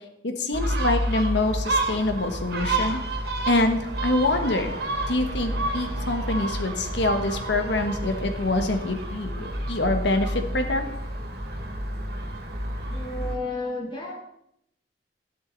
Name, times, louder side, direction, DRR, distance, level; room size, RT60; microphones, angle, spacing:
voice 1, 0.2-3.0 3.5-4.8 5.1-10.9, left 2 dB, 65° left, 6 dB, 1.4 m, -25 dB
Gull seagull, 0.5-13.4, right 1 dB, 55° right, 2.3 m, -29 dB
Wind instrument woodwind instrument, 3.7-8.3, right 6 dB, 30° right, 2.3 m, -44 dB
voice 2, 12.9-14.2, left 2 dB, 25° left, -2 dB, 1.9 m, -32 dB
12.5 x 11.0 x 4.1 m, 0.75 s
head